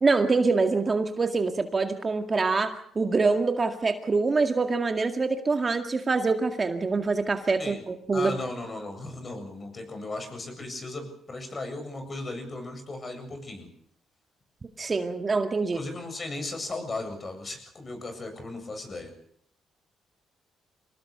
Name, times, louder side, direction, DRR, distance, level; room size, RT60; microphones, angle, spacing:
voice 1, 0.0-8.3 14.8-15.8, right 4 dB, 30° right, 6 dB, 2.1 m, -25 dB
voice 2, 8.1-13.7 15.7-19.1, left 2 dB, 35° left, 6 dB, 7.8 m, -36 dB
25.5 x 19.0 x 6.8 m, 0.65 s
cardioid pair, 90°, 0 cm